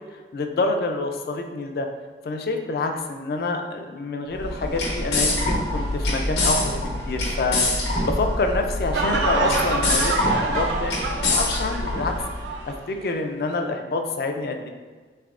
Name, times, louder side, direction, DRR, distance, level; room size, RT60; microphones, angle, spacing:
voice 1, 0.1-1.9 2.2-7.6 8.0-12.1 12.7-14.7, left 3 dB, 60° left, 4 dB, 0.3 m, -27 dB
sound 1, 4.3-12.5, left 2 dB, 80° left, 1.0 m, -25 dB
sound 2, 8.9-12.8 13.1-13.2, right 3 dB, 85° right, 0.4 m, -27 dB
3.4 x 3.2 x 2.4 m, 1.4 s
head